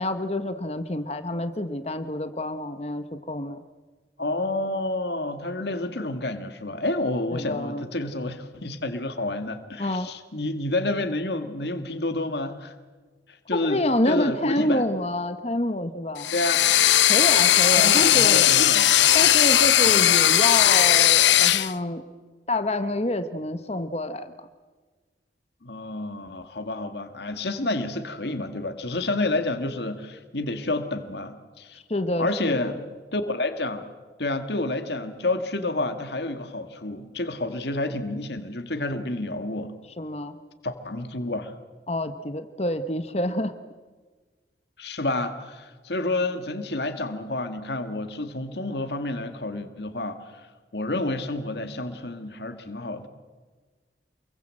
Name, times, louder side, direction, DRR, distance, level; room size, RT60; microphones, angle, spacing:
voice 1, 0.0-3.6 7.3-7.9 9.8-10.1 13.5-16.3 17.0-18.5 19.1-22.0 22.5-24.3 31.9-32.7 40.0-40.4 41.9-43.5, left 1 dB, 35° left, 10 dB, 1.1 m, -27 dB
voice 2, 4.2-12.7 13.3-14.8 16.3-16.7 17.8-18.9 19.8-20.1 25.6-31.8 32.2-32.8 33.1-33.8 34.2-39.7 40.6-41.5 44.8-53.1, left 2 dB, 70° left, 7 dB, 2.1 m, -29 dB
sound 1, 16.2-21.7, left 12 dB, 85° left, 0.8 m, -18 dB
28.0 x 22.5 x 7.8 m, 1.4 s
head